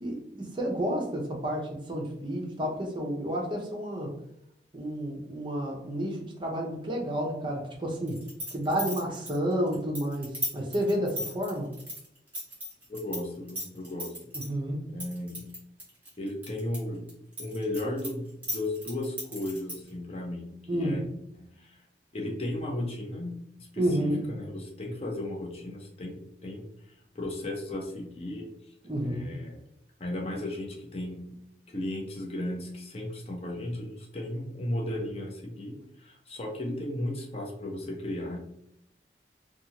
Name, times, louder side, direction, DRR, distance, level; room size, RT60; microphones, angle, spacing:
voice 1, 0.0-4.1 4.7-8.2 8.5-11.7 14.5-14.8 20.7-21.0 23.8-24.2 28.8-29.3, equal, 25° right, -1 dB, 0.6 m, -30 dB
sound 1, 8.1-13.2 13.5-14.5 15.0-16.8 17.1-19.9, left 1 dB, 10° right, 1.1 m, -36 dB
voice 2, 12.9-14.1 14.9-15.5 16.2-17.1 17.4-21.1 21.3-21.8 22.1-23.4 23.7-26.1 26.4-26.6 27.1-28.5 29.0-29.6 30.0-31.4 31.7-38.4, left 1 dB, 35° left, -1 dB, 0.5 m, -35 dB
2.7 x 2.3 x 2.8 m, 0.75 s
head